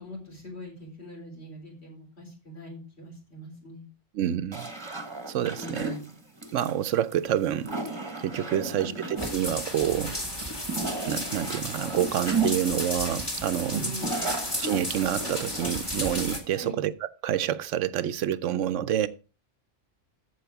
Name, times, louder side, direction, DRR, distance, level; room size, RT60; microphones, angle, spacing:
voice 1, 0.0-3.9 5.5-6.1 8.5-9.0 13.6-14.3 16.5-16.8, right 1 dB, 60° left, 4.2 m, -41 dB
voice 2, 4.1-4.7 5.3-5.9 6.5-7.7 8.2-10.2 11.1-14.0 14.6-16.9 17.2-19.1, right 10 dB, 85° right, 1.0 m, -28 dB
sound 1, 4.5-16.6, right 3 dB, 25° right, 1.3 m, -34 dB
sound 2, 9.2-16.4, left 1 dB, 20° left, 2.0 m, -34 dB
14.0 x 4.8 x 4.6 m
omnidirectional pair, 1.2 m